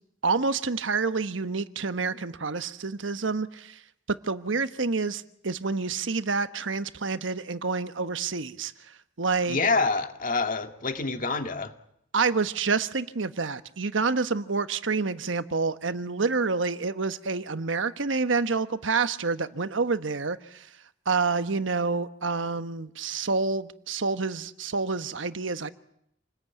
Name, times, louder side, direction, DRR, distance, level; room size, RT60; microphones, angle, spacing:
voice 1, 0.2-3.8 4.1-9.6 12.1-20.7 21.1-25.7, right 4 dB, 80° right, 1.2 m, -28 dB
voice 2, 9.5-11.7, left 3 dB, 45° left, 2.1 m, -27 dB
28.0 x 20.5 x 9.2 m
head